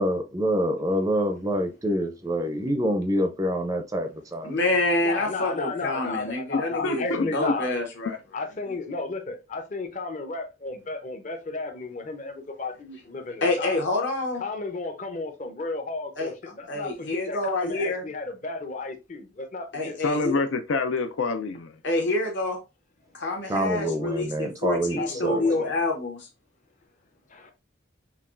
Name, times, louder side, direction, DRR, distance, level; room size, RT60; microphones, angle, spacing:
voice 1, 0.0-4.5 23.5-25.4, equal, 20° right, 0.5 m, -26 dB
voice 2, 4.4-8.2 13.4-14.4 16.1-16.3 16.7-18.1 19.7-20.4 21.8-22.6 23.1-26.3, left 2 dB, 65° left, 1.2 m, -27 dB
voice 3, 5.0-7.7 8.3-13.8 14.4-19.9 25.0-25.7 27.3-27.5, left 3 dB, 40° left, 0.7 m, -33 dB
voice 4, 6.5-7.3 20.0-21.7, left 3 dB, 85° left, 0.5 m, -27 dB
5.6 x 2.3 x 2.5 m
head